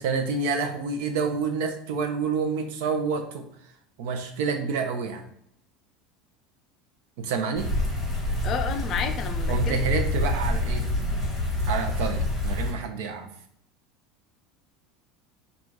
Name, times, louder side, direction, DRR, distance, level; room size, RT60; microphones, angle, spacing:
voice 1, 0.0-3.5 4.0-5.3 7.2-7.7 9.5-10.9 11.7-13.3, right 5 dB, 65° right, 5 dB, 0.7 m, -28 dB
sound 1, 7.6-12.7, left 2 dB, 5° left, 1.0 m, -27 dB
voice 2, 8.4-9.8, left 7 dB, 30° left, 9 dB, 0.3 m, -31 dB
3.9 x 2.4 x 4.7 m, 0.69 s
cardioid pair, 175°, 0 cm